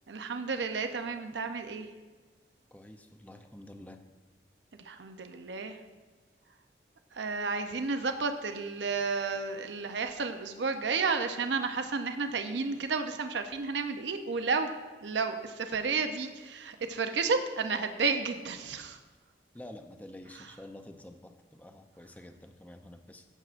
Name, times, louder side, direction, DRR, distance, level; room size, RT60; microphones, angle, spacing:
voice 1, 0.1-1.9 4.8-5.8 7.1-14.7 15.0-19.0 20.3-20.5, right 4 dB, 85° right, 7 dB, 0.7 m, -32 dB
voice 2, 2.7-4.0 19.5-23.2, left 1 dB, 10° left, 6 dB, 0.5 m, -49 dB
15.5 x 7.5 x 2.5 m, 1.4 s
head